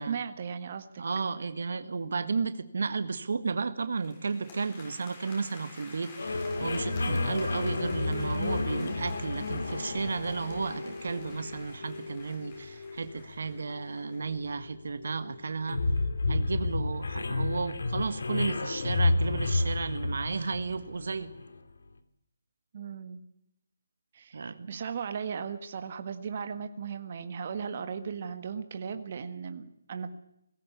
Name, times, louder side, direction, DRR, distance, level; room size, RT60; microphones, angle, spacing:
voice 1, 0.0-1.1 6.9-7.2 22.7-23.2 24.1-30.1, right 6 dB, 45° right, 9 dB, 1.7 m, -37 dB
voice 2, 1.0-15.8 16.3-21.3 24.3-24.8, right 4 dB, 65° right, 12 dB, 1.7 m, -33 dB
sound 1, 4.0-14.3, left 3 dB, 30° left, 6.4 m, -50 dB
sound 2, 6.2-21.6, left 3 dB, 70° left, 2.5 m, -32 dB
19.5 x 16.5 x 8.4 m, 0.81 s
figure-of-eight pair, 155°, 0 cm